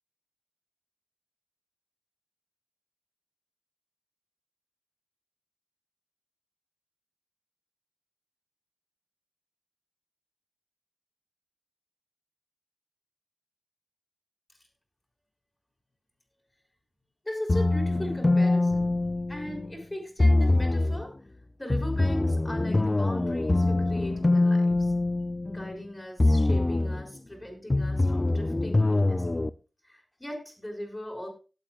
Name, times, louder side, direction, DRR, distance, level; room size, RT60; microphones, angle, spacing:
voice 1, 17.2-19.0 19.3-21.1 21.6-24.9 25.5-29.5 29.8-31.3, equal, 20° left, 1 dB, 6.2 m, -38 dB
sound 1, 17.5-19.7 20.2-21.0 21.7-25.8 26.2-27.0 27.7-29.5, left 2 dB, 35° left, 0.4 m, -24 dB
18.0 x 9.1 x 2.4 m, 0.33 s
cardioid pair, 45°, 0 cm